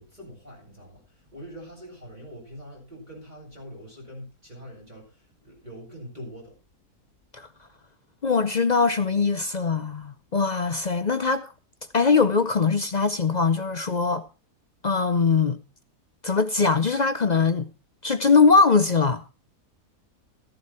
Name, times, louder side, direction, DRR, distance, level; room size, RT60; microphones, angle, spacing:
voice 1, 0.0-6.5, equal, 25° right, 8.0 m, -43 dB
voice 2, 8.2-11.5 11.9-14.2 14.8-15.6 16.2-17.7 18.0-19.2, left 4 dB, 50° left, 0.5 m, -21 dB
14.0 x 11.0 x 4.3 m
omnidirectional pair, 1.7 m